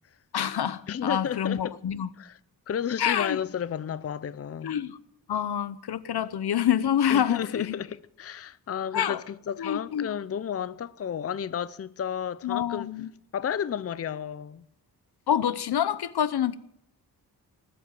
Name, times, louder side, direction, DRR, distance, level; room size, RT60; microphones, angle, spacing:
voice 1, 0.3-2.1 3.0-3.4 4.6-5.0 5.3-7.8 8.9-9.2 9.6-10.1 12.4-13.1 15.3-16.5, left 9 dB, 85° left, 1.0 m, -27 dB
voice 2, 0.9-1.8 2.2-2.4 2.7-4.8 7.1-12.9 13.3-14.6, left 8 dB, 40° left, 0.5 m, -32 dB
19.5 x 8.1 x 9.0 m
wide cardioid pair, 150°, 38 cm